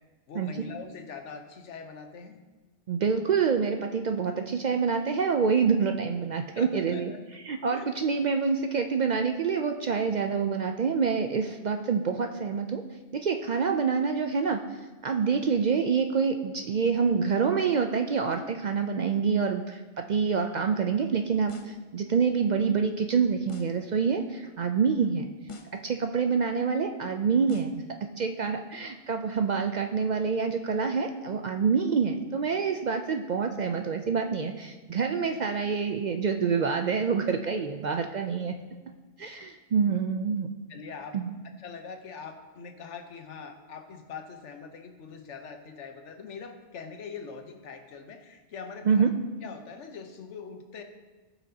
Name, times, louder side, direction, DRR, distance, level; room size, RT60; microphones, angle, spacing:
voice 1, 0.3-2.4 6.5-7.2 7.7-7.9 40.7-41.1 41.4-49.1 49.4-50.8, left 5 dB, 80° left, 6 dB, 1.2 m, -43 dB
voice 2, 2.9-7.1 7.5-12.8 13.1-14.6 15.0-25.3 25.7-38.6 39.2-40.5 41.1-41.3 48.9-49.1, right 5 dB, 60° right, 5 dB, 0.4 m, -27 dB
sound 1, 21.5-21.9 23.5-23.9 25.5-25.9 27.5-27.9, left 2 dB, 35° left, 0.5 m, -43 dB
17.5 x 5.9 x 2.8 m, 1.3 s
omnidirectional pair, 1.2 m